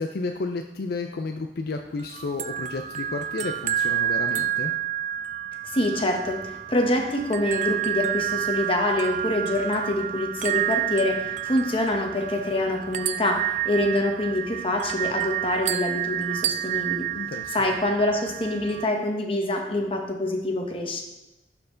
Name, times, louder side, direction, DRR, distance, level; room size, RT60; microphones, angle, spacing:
voice 1, 0.0-4.7 17.1-17.7, left 3 dB, 65° left, 5 dB, 0.5 m, -32 dB
sound 1, 2.0-18.9, right 11 dB, 45° right, 0.4 m, -29 dB
voice 2, 5.7-17.1 17.5-21.0, left 1 dB, 30° left, 2 dB, 1.1 m, -25 dB
11.5 x 4.5 x 3.8 m, 1.0 s
head